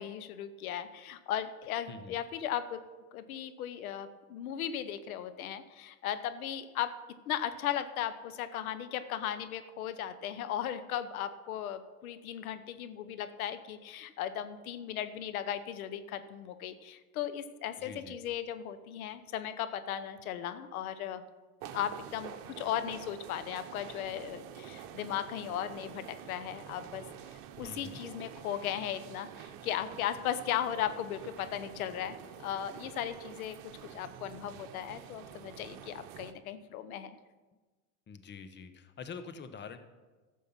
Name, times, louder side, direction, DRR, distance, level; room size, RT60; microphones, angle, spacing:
voice 1, 0.0-2.8 3.1-6.9 7.3-21.2 21.7-27.0 27.3-37.1, left 10 dB, 75° left, 12 dB, 0.9 m, -37 dB
voice 2, 17.8-18.2 27.6-28.0 38.1-39.8, left 5 dB, 25° left, 9 dB, 1.1 m, -45 dB
sound 1, 21.6-36.3, right 9 dB, 55° right, 1.1 m, -48 dB
13.0 x 7.4 x 5.8 m, 1.3 s
hypercardioid pair, 90°, 43 cm